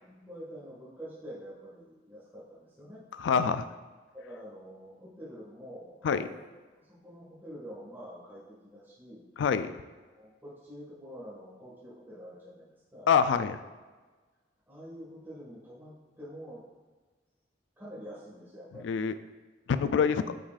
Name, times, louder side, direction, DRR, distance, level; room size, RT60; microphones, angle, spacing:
voice 1, 0.0-3.0 4.1-6.5 6.7-9.2 10.1-13.1 14.7-16.6 17.8-18.9, equal, 10° right, -9 dB, 1.6 m, -47 dB
voice 2, 3.2-3.6 6.0-6.3 9.4-9.7 13.1-13.6 18.8-19.1 19.7-20.3, left 6 dB, 85° left, 12 dB, 0.3 m, -25 dB
8.8 x 4.8 x 2.4 m, 1.3 s
head